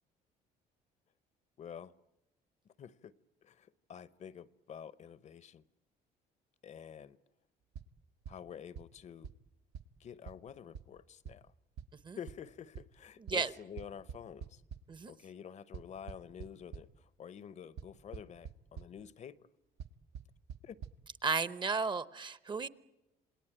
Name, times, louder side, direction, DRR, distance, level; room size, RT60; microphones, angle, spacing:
voice 1, 1.6-1.9 2.8-3.1 3.4-5.6 6.6-7.2 8.3-9.3 10.0-11.5 12.1-14.6 15.1-19.5 20.6-20.8, left 8 dB, 45° left, 0.8 m, -49 dB
sound 1, 7.7-7.9 8.3-8.4 8.8-8.9 9.2-9.3 9.7-9.8 10.3-10.4 10.7-10.8 11.2-11.3 11.8-11.9 12.3-12.4 12.7-12.8 13.3-13.4 13.8-14.8 15.7-16.8 17.8-17.9 18.1-18.5 18.8-18.9 19.8-19.9 20.1-20.2 20.5-20.6 20.8-20.9, right 7 dB, 75° right, 1.1 m, -43 dB
voice 2, 13.2-13.5 14.9-15.1 21.2-22.7, right 4 dB, 25° right, 0.8 m, -34 dB
28.0 x 18.5 x 9.0 m
cardioid pair, 110°, 17 cm